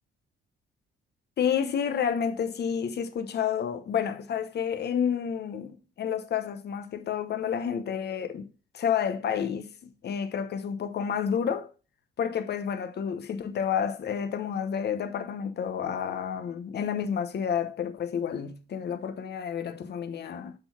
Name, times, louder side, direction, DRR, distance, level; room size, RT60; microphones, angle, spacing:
voice 1, 1.4-8.5 8.7-11.7 12.2-20.5, left 8 dB, 55° left, 1.0 m, -30 dB
6.8 x 4.0 x 5.8 m
cardioid pair, 90°, 20 cm